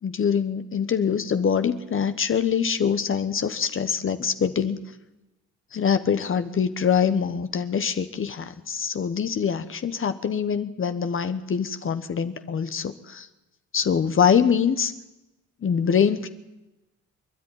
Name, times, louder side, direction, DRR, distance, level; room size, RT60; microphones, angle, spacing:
voice 1, 0.0-4.8 5.7-13.3 13.7-14.9 15.6-16.3, left 7 dB, 45° left, 10 dB, 1.2 m, -24 dB
25.5 x 10.5 x 9.9 m, 1.0 s
cardioid pair, 90°, 30 cm